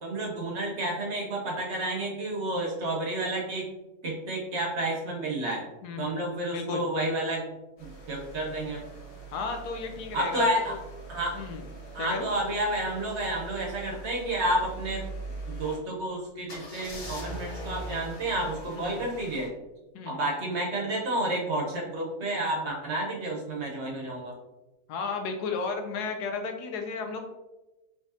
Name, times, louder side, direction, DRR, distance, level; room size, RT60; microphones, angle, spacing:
voice 1, 0.0-3.7 4.0-5.7 6.0-8.9 10.1-10.8 11.1-11.4 11.9-15.0 15.5-19.5 20.1-24.4, right 1 dB, 50° right, -1 dB, 1.0 m, -30 dB
voice 2, 5.8-6.2 6.5-6.8 9.3-10.8 11.3-11.6 12.0-12.3 18.7-19.0 19.9-20.2 24.9-27.2, left 4 dB, 80° left, 5 dB, 1.2 m, -34 dB
sound 1, 7.8-15.8 16.5-19.5, right 2 dB, 65° left, 1.4 m, -42 dB
5.0 x 3.3 x 2.7 m, 1.1 s
omnidirectional pair, 1.7 m